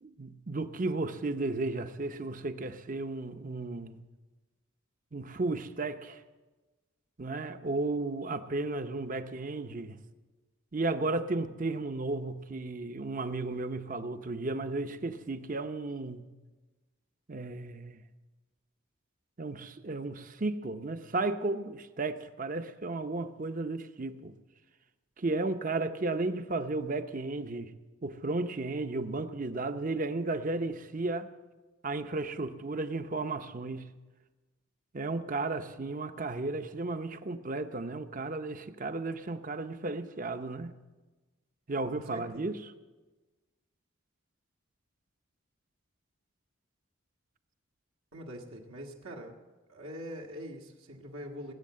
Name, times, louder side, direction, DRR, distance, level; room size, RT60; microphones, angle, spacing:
voice 1, 0.0-4.0 5.1-6.2 7.2-10.0 10.7-16.2 17.3-18.0 19.4-24.3 25.2-27.7 28.0-31.3 31.8-33.9 34.9-40.7 41.7-42.6, right 2 dB, 40° right, 0.7 m, -34 dB
voice 2, 41.8-42.4 48.1-49.4 49.7-51.5, equal, 75° right, 1.5 m, -43 dB
19.0 x 8.4 x 7.5 m
head